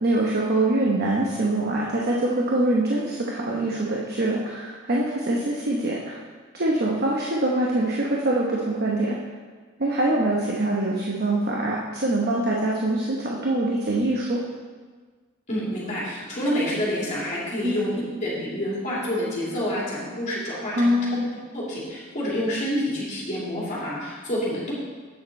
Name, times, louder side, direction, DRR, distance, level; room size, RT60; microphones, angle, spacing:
voice 1, 0.0-6.2 6.5-9.2 9.8-14.4 17.6-17.8 20.7-21.2, right 1 dB, 50° right, -3 dB, 0.9 m, -24 dB
voice 2, 15.5-21.0 21.5-24.7, equal, 35° left, -7 dB, 2.9 m, -28 dB
8.7 x 6.6 x 4.3 m, 1.5 s
head